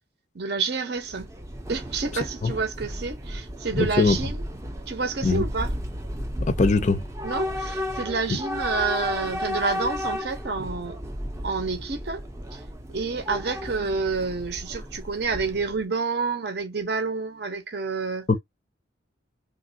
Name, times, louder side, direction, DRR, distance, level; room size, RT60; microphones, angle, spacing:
voice 1, 0.3-1.3 1.7-4.4 4.9-5.7 7.2-11.0 11.4-12.2 12.5-12.6 12.9-18.3, right 4 dB, 55° right, 0.7 m, -28 dB
Train / Subway metro underground, 1.0-15.8, left 1 dB, 15° right, 0.5 m, -33 dB
voice 2, 3.8-4.2 5.2-5.4 6.5-7.0, left 3 dB, 40° left, 0.4 m, -21 dB
3.1 x 2.5 x 2.6 m
head